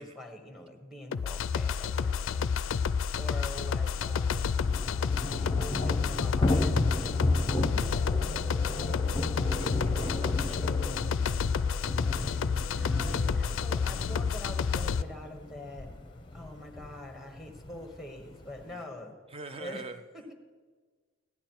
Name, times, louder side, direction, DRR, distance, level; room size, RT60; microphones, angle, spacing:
voice 1, 0.0-2.6 3.1-4.6 5.4-8.2 9.8-10.2 12.3-15.9 16.3-19.2 19.6-19.8 20.1-20.3, left 1 dB, ahead, 5 dB, 1.1 m, -45 dB
sound 1, 1.1-15.0, left 6 dB, 70° left, 0.4 m, -30 dB
Thunder / Rain, 2.9-18.7, left 2 dB, 25° left, 0.7 m, -34 dB
sound 2, 3.8-13.7, right 8 dB, 50° right, 1.2 m, -55 dB
voice 2, 9.3-10.6 18.7-18.9 19.3-20.0, right 3 dB, 25° right, 10 dB, 0.5 m, -45 dB
15.0 x 10.5 x 4.5 m, 1.5 s
head